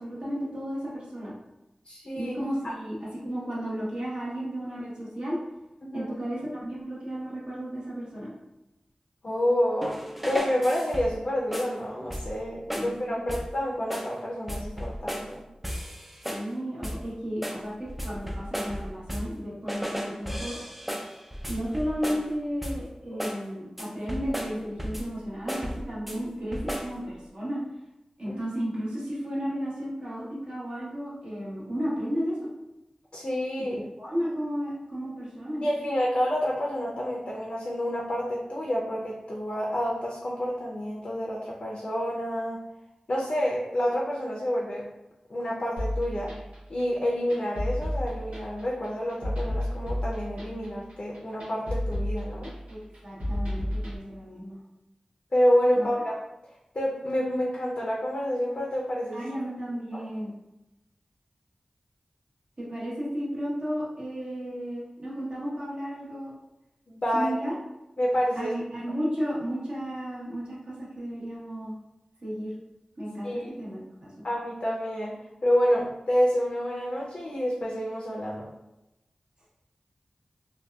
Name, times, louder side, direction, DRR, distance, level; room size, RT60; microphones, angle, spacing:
voice 1, 0.0-1.3 2.1-3.0 3.2-5.4 5.9-8.3 12.7-13.3 16.3-20.6 21.5-27.6 28.2-32.5 34.0-35.9 52.7-54.6 55.7-55.9 59.1-60.3 62.6-66.3 67.1-67.5 68.3-71.7 72.2-72.5 73.0-74.1, equal, 50° right, -7 dB, 1.1 m, -33 dB
voice 2, 1.8-2.3 5.8-6.1 9.2-10.0 10.2-15.4 28.3-28.4 33.1-33.8 35.6-42.6 43.1-44.8 45.3-46.3 46.7-52.5 55.3-56.2 56.7-59.3 59.9-60.0 66.9-67.3 68.0-68.5 73.2-73.5 74.2-78.5, equal, 55° left, -4 dB, 0.5 m, -28 dB
sound 1, 9.8-11.2 11.5-11.8 12.1-12.4 12.7-13.0 13.3-13.6 13.9-14.2 14.5-15.4 15.6-16.5 16.8-17.1 17.4-19.4 19.7-22.3 22.6-22.9 23.2-23.5 23.8-25.2 25.5-26.2 26.5-27.0, equal, 5° right, 0.3 m, -34 dB
sound 2, 45.8-54.0, left 1 dB, 90° right, 0.9 m, -32 dB
2.7 x 2.3 x 2.2 m, 0.95 s
wide cardioid pair, 55°, 2 cm